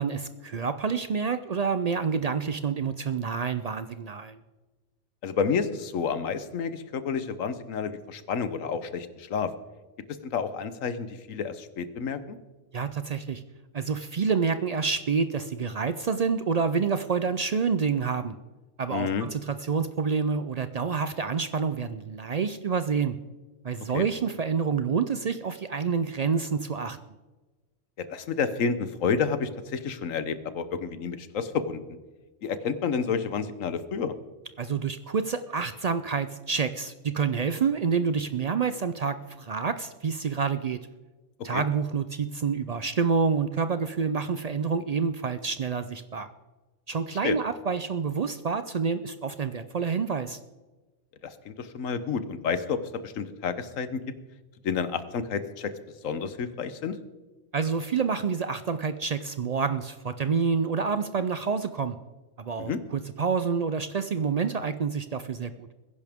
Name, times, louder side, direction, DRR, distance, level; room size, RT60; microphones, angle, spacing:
voice 1, 0.0-4.4 12.7-13.4 13.7-18.3 18.8-23.2 23.6-27.0 34.6-40.8 41.4-46.3 46.9-50.4 57.5-62.0 62.4-65.7, right 5 dB, 75° right, 11 dB, 0.3 m, -28 dB
voice 2, 5.2-9.5 10.2-12.4 18.9-19.3 23.9-24.0 28.0-31.8 32.4-34.1 41.5-41.6 47.2-47.4 51.2-54.0 54.6-55.7 56.0-56.9 62.6-62.8, left 6 dB, 80° left, 12 dB, 1.3 m, -30 dB
20.5 x 10.5 x 3.5 m, 1.2 s
omnidirectional pair, 1.3 m